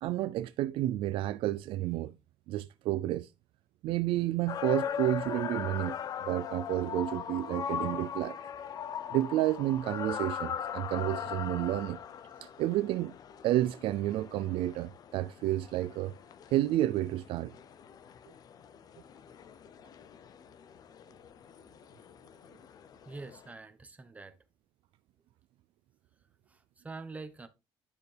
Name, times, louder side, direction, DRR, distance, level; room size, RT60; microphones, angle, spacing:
voice 1, 0.0-2.1 2.5-3.3 3.8-6.0 6.2-8.4 9.1-12.0 12.4-13.1 13.4-16.1 16.5-17.5, right 14 dB, 80° right, 0.4 m, -30 dB
sound 1, 4.5-23.5, left 8 dB, 45° left, 0.6 m, -40 dB
voice 2, 23.1-24.4 26.8-27.5, right 3 dB, 15° right, 1.1 m, -44 dB
10.0 x 6.7 x 3.4 m
cardioid pair, 145°, 9 cm